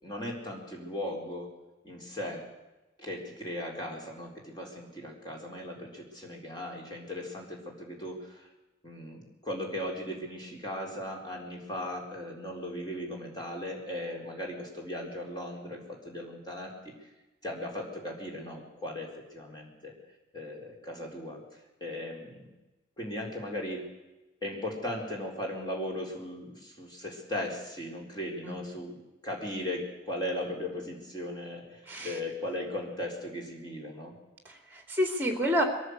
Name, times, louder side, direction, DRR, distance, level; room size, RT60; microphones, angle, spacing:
voice 1, 0.0-1.5 1.8-2.5 3.0-8.5 8.8-16.9 17.4-19.9 20.3-21.4 21.8-22.4 23.0-23.8 24.4-29.0 29.2-34.1, left 1 dB, 20° left, -1 dB, 4.2 m, -37 dB
voice 2, 31.9-32.2 34.4-35.6, equal, 10° right, 4 dB, 3.0 m, -29 dB
22.0 x 14.5 x 8.1 m, 1.1 s
head